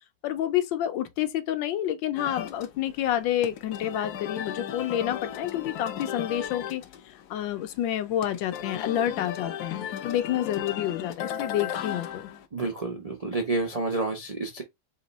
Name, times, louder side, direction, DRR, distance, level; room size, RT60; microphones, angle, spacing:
voice 1, 0.2-6.8 7.3-12.2, left 11 dB, 85° left, 1.4 m, -29 dB
sound 1, 2.2-12.5, left 9 dB, 70° left, 1.1 m, -36 dB
voice 2, 12.5-14.6, right 2 dB, 85° right, 0.3 m, -29 dB
3.6 x 2.9 x 3.9 m
omnidirectional pair, 2.0 m